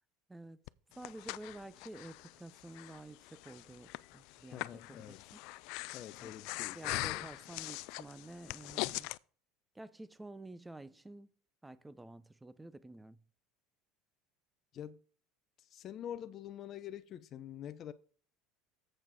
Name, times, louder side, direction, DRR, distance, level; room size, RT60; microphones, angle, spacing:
Breathing, 0.7-9.2, left 22 dB, 65° left, 0.3 m, -42 dB
voice 1, 1.0-5.4 6.2-6.3 6.7-9.1 9.7-11.3 11.6-13.2, right 2 dB, 10° right, 0.6 m, -50 dB
voice 2, 4.5-5.2 5.9-7.2 14.7-15.0 15.6-17.9, left 10 dB, 40° left, 0.7 m, -46 dB
7.7 x 7.1 x 5.0 m
supercardioid pair, 130°, 0 cm